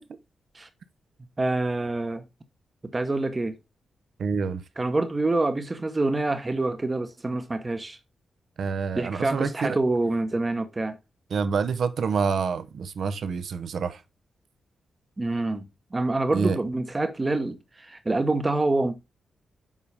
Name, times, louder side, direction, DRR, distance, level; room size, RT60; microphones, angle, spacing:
voice 1, 1.4-2.2 2.8-3.6 4.8-8.0 8.9-11.0 15.2-18.9, right 2 dB, 20° right, 0.9 m, -26 dB
voice 2, 4.2-4.6 8.6-9.8 11.3-14.0 16.3-16.6, right 5 dB, 55° right, 0.6 m, -27 dB
7.3 x 5.4 x 3.3 m
wide cardioid pair, 175°, 0 cm